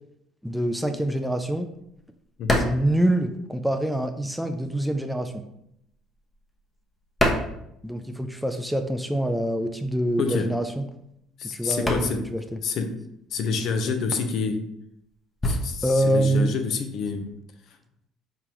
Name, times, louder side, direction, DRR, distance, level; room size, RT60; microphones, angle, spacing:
voice 1, 0.4-1.7 2.7-5.4 7.8-10.9 11.5-12.4 15.8-16.5, right 1 dB, ahead, 6 dB, 0.4 m, -25 dB
sound 1, 0.6-4.0 4.3-8.4 8.7-17.4, left 1 dB, 20° left, 0.9 m, -31 dB
voice 2, 10.2-10.5 11.4-12.3 12.6-12.9 13.3-14.6 15.4-17.3 17.7-17.8, left 5 dB, 60° left, 6 dB, 0.6 m, -27 dB
4.6 x 3.7 x 2.9 m, 0.78 s
cardioid pair, 110°, 0 cm